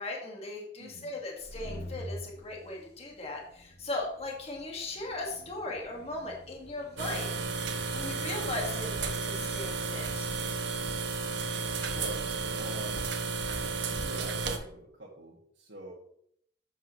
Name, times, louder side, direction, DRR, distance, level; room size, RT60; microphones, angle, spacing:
voice 1, 0.0-7.3 7.9-10.3, left 2 dB, 35° left, -1 dB, 1.9 m, -38 dB
voice 2, 0.8-1.1 11.9-12.3 12.6-13.2 14.0-15.9, right 1 dB, 85° right, -5 dB, 2.0 m, -45 dB
sound 1, 1.2-11.7, equal, 60° left, 1.6 m, -49 dB
sound 2, 7.0-14.6, right 4 dB, 65° right, 1.2 m, -33 dB
11.0 x 8.6 x 3.2 m, 0.68 s
head